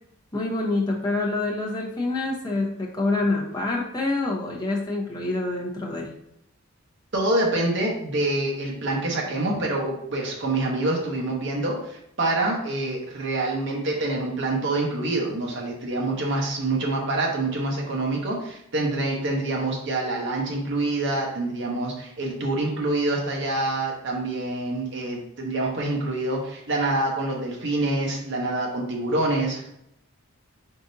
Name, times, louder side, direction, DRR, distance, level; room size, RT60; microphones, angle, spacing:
voice 1, 0.3-6.1, left 2 dB, 20° left, -3 dB, 0.7 m, -26 dB
voice 2, 7.1-29.6, right 2 dB, 55° right, -2 dB, 0.8 m, -26 dB
4.2 x 3.6 x 2.6 m, 0.76 s
head